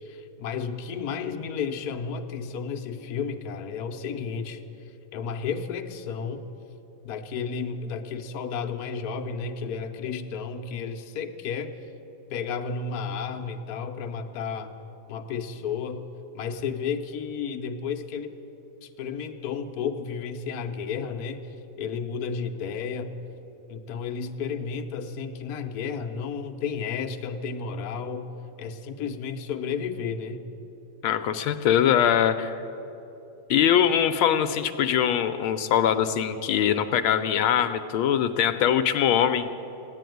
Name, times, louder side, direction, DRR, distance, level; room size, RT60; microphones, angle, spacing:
voice 1, 0.0-6.4 7.0-11.7 12.3-14.7 15.1-16.1 16.3-18.4 18.8-23.1 23.7-28.3 28.6-30.5, left 6 dB, 55° left, 4 dB, 1.2 m, -32 dB
voice 2, 31.0-32.5 33.5-39.5, left 9 dB, 80° left, 9 dB, 1.4 m, -22 dB
15.5 x 9.9 x 9.2 m, 3.0 s
omnidirectional pair, 2.3 m